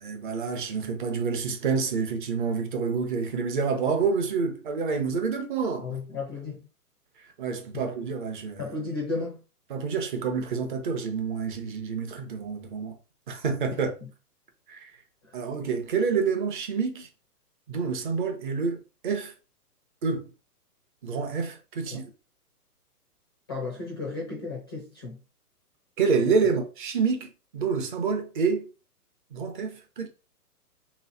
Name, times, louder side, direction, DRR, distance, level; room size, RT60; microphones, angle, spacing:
voice 1, 0.0-6.0 7.4-8.6 9.7-13.0 13.3-13.9 14.7-14.9 15.3-17.1 17.7-19.3 20.0-20.3 21.0-22.1 26.0-28.7 29.3-30.1, right 5 dB, 30° right, 0.8 m, -28 dB
voice 2, 5.8-6.7 7.7-7.8 8.6-9.4 14.0-14.1 15.2-15.4 21.9-22.0 23.5-25.2, left 3 dB, 15° left, 0.4 m, -34 dB
3.2 x 3.1 x 4.0 m
hypercardioid pair, 150°, 47 cm